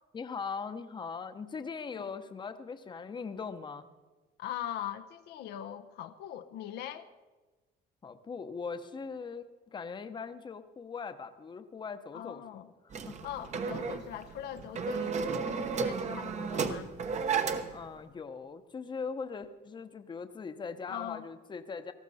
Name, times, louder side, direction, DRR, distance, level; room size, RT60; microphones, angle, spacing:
voice 1, 0.1-3.8 8.0-12.4 12.8-13.3 17.7-21.9, left 5 dB, 25° left, 9 dB, 0.9 m, -40 dB
voice 2, 4.4-7.1 12.1-12.7 13.2-16.9 20.9-21.3, left 11 dB, 80° left, 9 dB, 0.8 m, -41 dB
sound 1, 12.9-17.9, right 5 dB, 45° right, 1.0 m, -33 dB
18.0 x 14.0 x 4.2 m, 1.2 s
cardioid pair, 110°, 17 cm